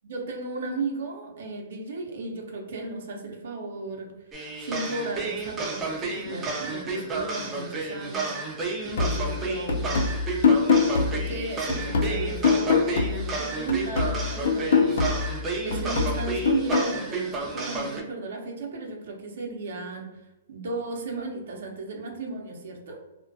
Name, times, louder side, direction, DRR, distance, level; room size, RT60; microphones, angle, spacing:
voice 1, 0.0-4.1 4.6-10.0 10.9-23.0, right 3 dB, 65° right, 1 dB, 0.6 m, -35 dB
sound 1, 4.3-18.0, right 3 dB, 15° right, 0.4 m, -32 dB
sound 2, 9.0-13.4 13.7-17.0, left 5 dB, 65° left, 0.4 m, -24 dB
2.3 x 2.2 x 2.6 m, 0.98 s
hypercardioid pair, 155°, 0 cm